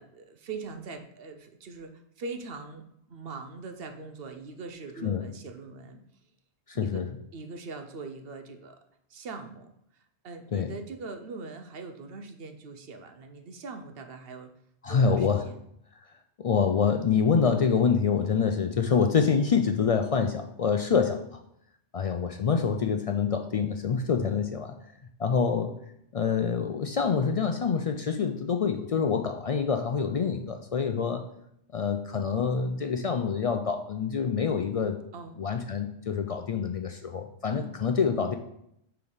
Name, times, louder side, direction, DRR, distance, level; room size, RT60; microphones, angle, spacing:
voice 1, 0.0-2.8 3.1-6.0 6.7-7.0 7.3-8.8 9.1-14.5 14.9-15.6 35.1-35.4 37.5-37.7, right 4 dB, 60° right, 6 dB, 0.9 m, -42 dB
voice 2, 6.7-7.1 10.5-10.7 14.8-15.4 16.4-21.4 21.9-24.8 25.2-25.8 26.1-31.3 31.7-35.0 35.4-38.4, left 6 dB, 70° left, 6 dB, 0.3 m, -26 dB
4.9 x 4.5 x 5.4 m, 0.74 s
omnidirectional pair, 1.1 m